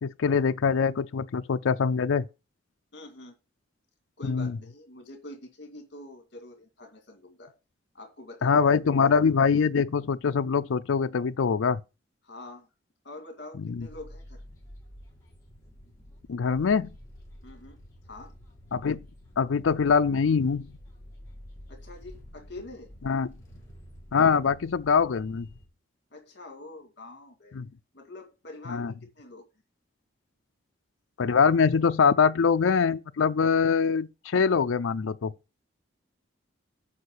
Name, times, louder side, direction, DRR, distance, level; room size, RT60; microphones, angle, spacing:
voice 1, 0.0-2.3 4.2-4.5 8.4-11.8 13.6-13.9 16.3-16.9 18.7-19.0 19.4-20.7 23.1-23.3 24.1-25.5 27.5-27.7 28.7-28.9 31.2-35.3, left 5 dB, 80° left, 0.4 m, -23 dB
voice 2, 2.9-3.3 4.2-7.5 7.9-8.7 12.2-12.7 13.0-14.4 17.4-17.8 18.0-18.3 21.7-22.9 26.1-27.6 27.9-29.5, left 2 dB, 55° left, 2.3 m, -45 dB
sound 1, 13.6-25.7, equal, 15° left, 3.0 m, -49 dB
8.6 x 5.1 x 6.6 m
head